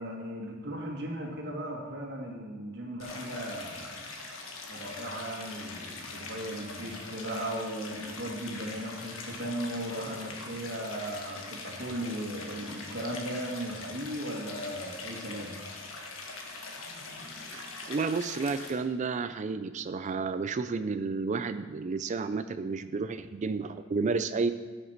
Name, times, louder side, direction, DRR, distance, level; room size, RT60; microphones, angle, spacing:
voice 1, 0.0-4.1 4.7-15.5, right 1 dB, 60° right, 0 dB, 2.0 m, -37 dB
Stream, 3.0-18.7, left 3 dB, 85° left, 1.5 m, -42 dB
voice 2, 17.9-24.5, right 4 dB, 35° right, 12 dB, 0.4 m, -31 dB
15.5 x 6.6 x 4.5 m, 1.3 s
head